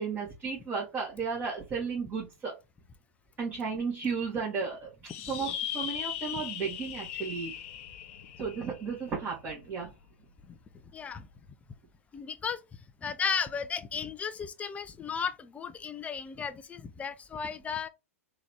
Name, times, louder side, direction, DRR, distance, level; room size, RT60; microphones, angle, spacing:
voice 1, 0.0-2.5 3.4-7.5 8.4-9.9, right 5 dB, 25° right, 1.8 m, -34 dB
sound 1, 5.1-9.8, left 10 dB, 55° left, 0.8 m, -39 dB
voice 2, 10.9-11.3 12.1-12.6 13.0-17.9, left 6 dB, 15° left, 0.5 m, -34 dB
3.8 x 2.9 x 3.5 m
hypercardioid pair, 110°, 8 cm